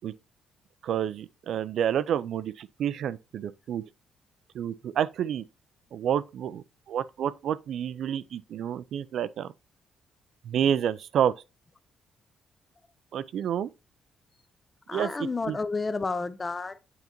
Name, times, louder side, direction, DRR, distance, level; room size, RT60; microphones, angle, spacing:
voice 1, 0.8-3.8 4.5-5.4 5.9-9.5 10.4-11.3 13.1-13.7 14.9-15.6, right 9 dB, 70° right, 0.3 m, -29 dB
voice 2, 14.9-16.8, left 3 dB, 25° left, 0.4 m, -31 dB
8.3 x 3.9 x 2.9 m
cardioid pair, 90°, 0 cm